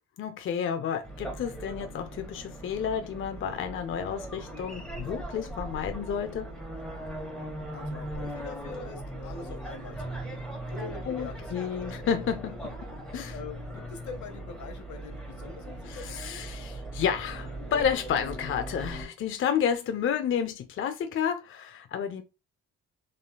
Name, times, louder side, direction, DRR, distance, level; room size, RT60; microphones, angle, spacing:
voice 1, 0.2-6.5 11.1-12.7 13.1-13.3 15.9-22.2, left 8 dB, 45° left, 0.4 m, -31 dB
sound 1, 1.0-19.1, right 1 dB, 5° left, 1.1 m, -39 dB
voice 2, 7.7-10.4 10.7-12.2 12.4-12.6 13.3-16.3, left 5 dB, 70° left, 0.8 m, -44 dB
3.0 x 2.6 x 2.2 m
cardioid pair, 90°, 30 cm